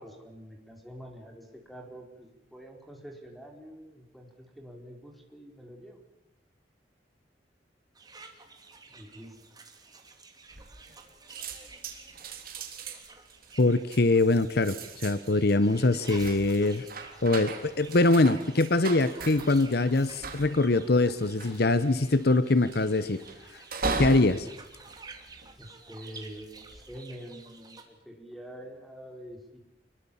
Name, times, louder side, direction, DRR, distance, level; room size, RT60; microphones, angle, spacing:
voice 1, 0.0-6.0 8.9-9.4 25.6-29.6, equal, ahead, 2 dB, 4.6 m, -46 dB
sound 1, 7.9-27.8, right 4 dB, 25° right, 2.9 m, -51 dB
sound 2, 10.5-11.0 11.3-25.8 26.4-26.8, right 3 dB, 60° right, 3.6 m, -39 dB
voice 2, 13.6-16.9 17.2-23.2 24.0-24.5, left 2 dB, 65° left, 15 dB, 1.0 m, -23 dB
26.5 x 22.5 x 7.2 m, 0.88 s
head